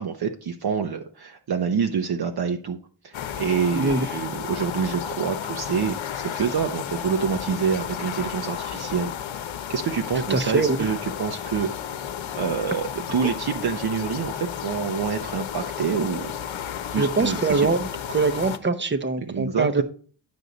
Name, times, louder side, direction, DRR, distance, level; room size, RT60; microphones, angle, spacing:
voice 1, 0.0-2.8 3.0-9.1 9.7-11.7 12.4-16.3 16.9-17.7 19.3-19.8, right 6 dB, 50° right, 0.9 m, -27 dB
sound 1, 3.1-18.6, left 9 dB, 65° left, 1.0 m, -33 dB
voice 2, 3.7-4.1 10.3-10.8 17.0-17.9 18.1-19.8, right 4 dB, 25° right, 0.9 m, -23 dB
9.7 x 6.3 x 4.0 m
cardioid pair, 100°, 49 cm